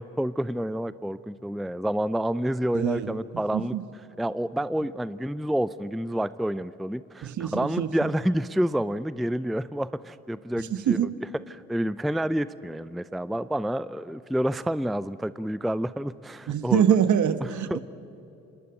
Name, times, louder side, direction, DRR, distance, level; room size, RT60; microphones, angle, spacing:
voice 1, 0.0-3.8 4.2-16.9 17.4-17.8, equal, ahead, 0.5 m, -29 dB
voice 2, 2.7-3.1 3.5-3.8 7.2-7.9 10.9-11.1 16.5-17.8, right 9 dB, 55° right, 1.4 m, -24 dB
26.0 x 20.5 x 9.1 m
hypercardioid pair, 55°, 36 cm